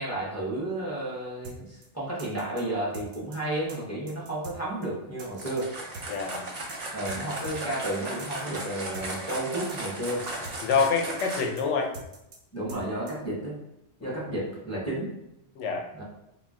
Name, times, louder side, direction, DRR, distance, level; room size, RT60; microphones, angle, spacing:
voice 1, 0.0-5.7 6.9-10.2 12.5-13.6 14.0-15.1 15.9-16.0, right 1 dB, 20° left, -6 dB, 0.5 m, -32 dB
sound 1, 1.4-1.6 1.8-1.9 2.2-2.6 2.9-3.4 3.7-3.8 4.1-4.6 4.8-4.9 5.2-5.6 5.9-6.4 6.7-6.8 7.1-7.2 7.4-7.6 7.8-7.9 8.2-8.6 8.9-9.4 9.7-9.8 10.1-10.6 10.8-10.9 11.2-11.6 11.9-12.4 12.7-12.8 13.1-13.2, right 3 dB, 90° right, 1.0 m, -44 dB
sound 2, 5.3-11.7, right 2 dB, 45° right, 0.6 m, -36 dB
voice 2, 6.1-6.4 10.6-11.9 14.0-14.2 15.6-15.8, left 5 dB, 80° left, 2 dB, 0.9 m, -26 dB
2.3 x 2.3 x 3.5 m, 0.85 s
omnidirectional pair, 1.2 m